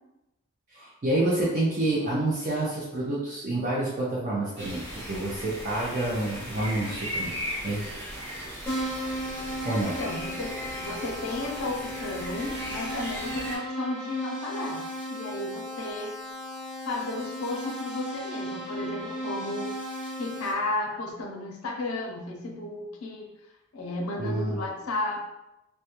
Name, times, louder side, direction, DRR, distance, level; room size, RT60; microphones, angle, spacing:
voice 1, 0.7-7.3 7.6-7.9 9.6-9.9 24.2-24.6, right 2 dB, 35° right, -6 dB, 0.4 m, -28 dB
sound 1, 4.6-13.6, equal, 60° right, 1.1 m, -37 dB
Keyboard (musical), 8.7-20.5, equal, 10° left, 0.6 m, -35 dB
voice 2, 9.7-16.1 16.8-19.7 20.2-23.3 23.7-25.2, left 2 dB, 85° left, 0 dB, 0.5 m, -33 dB
2.2 x 2.1 x 2.8 m, 0.92 s
head